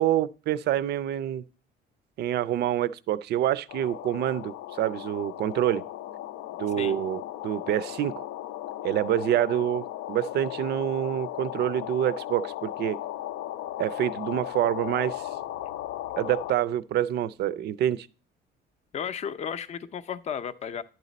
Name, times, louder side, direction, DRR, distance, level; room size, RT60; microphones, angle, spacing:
voice 1, 0.0-1.4 2.2-5.8 6.6-8.2 8.8-13.0 13.8-15.2 16.1-18.1, right 11 dB, 60° right, 0.4 m, -27 dB
sound 1, 3.7-16.5, left 14 dB, 85° left, 0.5 m, -36 dB
voice 2, 18.9-20.8, left 8 dB, 35° left, 0.5 m, -34 dB
11.0 x 4.1 x 4.0 m
cardioid pair, 130°, 20 cm